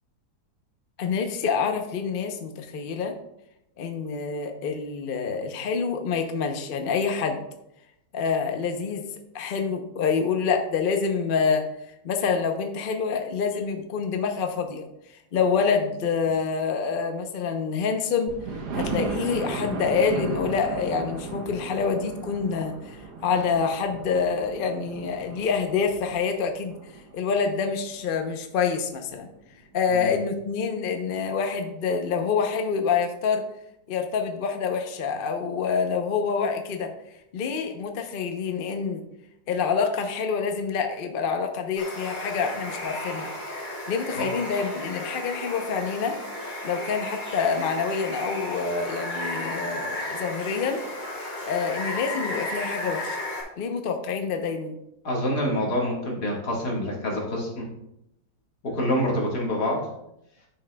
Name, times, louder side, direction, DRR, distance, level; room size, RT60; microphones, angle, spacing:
voice 1, 1.0-3.1 3.8-7.4 8.1-9.0 9.3-11.7 12.0-14.9 15.3-18.4 18.7-26.8 27.1-29.3 29.7-33.4 33.9-36.9 37.3-39.0 39.5-43.3 43.9-46.2 46.6-50.8 51.5-53.2 53.6-54.7, left 5 dB, 50° left, 5 dB, 0.7 m, -27 dB
Thunder, 18.3-28.0 28.6-28.7 29.1-29.2 29.4-29.5, right 3 dB, 85° right, 1.4 m, -35 dB
Water, 41.8-53.4, left 1 dB, 30° left, 1.5 m, -34 dB
voice 2, 55.0-57.7 58.6-59.8, left 1 dB, 75° left, -2 dB, 2.2 m, -26 dB
11.0 x 6.0 x 2.2 m, 0.82 s
omnidirectional pair, 1.7 m